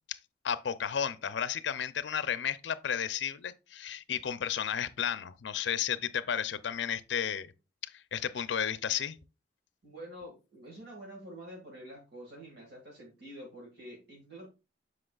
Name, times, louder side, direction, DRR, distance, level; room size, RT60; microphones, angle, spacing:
voice 1, 0.4-7.5 7.9-9.2, left 8 dB, 70° left, 0.5 m, -33 dB
voice 2, 9.8-14.5, equal, 60° right, 1.9 m, -47 dB
7.6 x 6.1 x 2.3 m
head